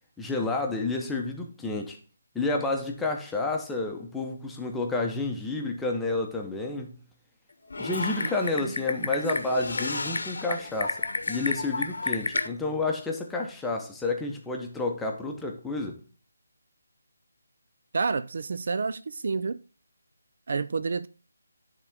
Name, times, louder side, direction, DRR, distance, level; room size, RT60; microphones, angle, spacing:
voice 1, 0.2-2.0 2.3-7.0 7.8-16.0, left 3 dB, 5° left, 0.8 m, -30 dB
Typing, 7.7-12.5, left 3 dB, 70° left, 0.9 m, -31 dB
voice 2, 17.9-19.6 20.5-21.1, right 4 dB, 55° right, 0.3 m, -29 dB
9.9 x 3.8 x 3.5 m
figure-of-eight pair, 160°, 0 cm